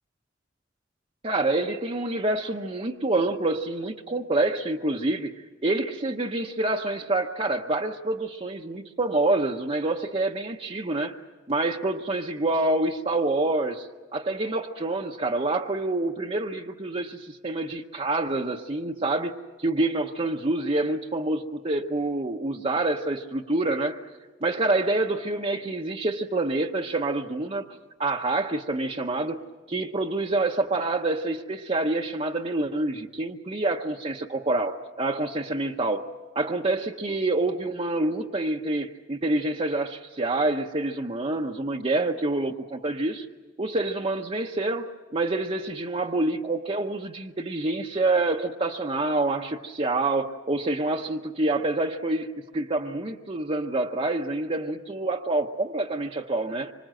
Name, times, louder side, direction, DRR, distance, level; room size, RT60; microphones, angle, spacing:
voice 1, 1.2-11.2 11.5-24.1 24.4-29.4 29.7-36.1 36.3-43.3 43.6-56.7, right 2 dB, 35° right, 0.9 m, -27 dB
26.0 x 25.0 x 7.7 m
head